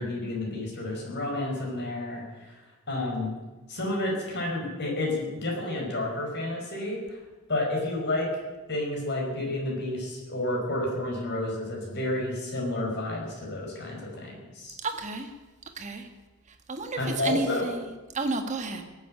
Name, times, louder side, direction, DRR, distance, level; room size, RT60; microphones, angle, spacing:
voice 1, 0.0-2.6 2.9-3.3 3.7-7.2 7.5-8.3 8.7-14.8 17.0-17.7, left 1 dB, 50° left, -1 dB, 5.0 m, -30 dB
voice 2, 14.8-15.3 15.8-16.1 16.7-17.9 18.1-18.8, right 2 dB, 35° right, 5 dB, 1.6 m, -31 dB
17.5 x 8.2 x 8.8 m, 1.2 s
head